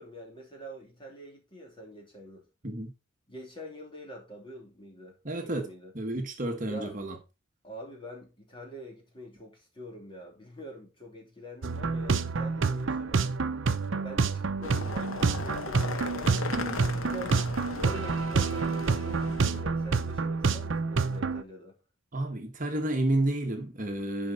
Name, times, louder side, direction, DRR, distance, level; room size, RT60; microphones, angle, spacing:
voice 1, 0.0-2.4 3.3-5.2 5.4-5.9 6.6-7.0 7.6-13.2 13.9-16.3 17.0-21.8, equal, 25° left, 2.9 m, -45 dB
voice 2, 5.2-5.7 5.9-7.2 16.5-16.9 22.1-24.3, right 1 dB, 40° right, 1.4 m, -30 dB
sound 1, 11.6-21.4, right 4 dB, 65° right, 0.7 m, -28 dB
sound 2, 14.6-19.6, left 3 dB, 80° left, 0.9 m, -37 dB
10.5 x 5.2 x 4.2 m
head